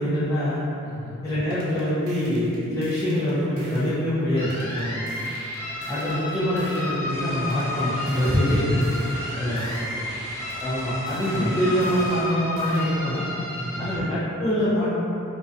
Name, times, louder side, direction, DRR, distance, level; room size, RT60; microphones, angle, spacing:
voice 1, 0.0-0.6 1.2-5.1 5.9-8.8 9.4-9.6 10.6-13.2 13.8-14.9, equal, 15° left, -14 dB, 0.4 m, -24 dB
voice 2, 0.8-1.2 4.7-5.1 8.1-8.3 9.1-10.0 13.4-13.8, equal, 45° left, -11 dB, 0.8 m, -39 dB
sound 1, 1.5-4.0 4.5-7.0 7.5-10.0 10.5-13.0, right 1 dB, 80° right, 0.5 m, -45 dB
sound 2, 4.4-14.0, left 2 dB, 85° left, 0.7 m, -32 dB
sound 3, 7.1-12.3, right 1 dB, 60° right, 0.9 m, -40 dB
2.5 x 2.1 x 2.4 m, 2.9 s
head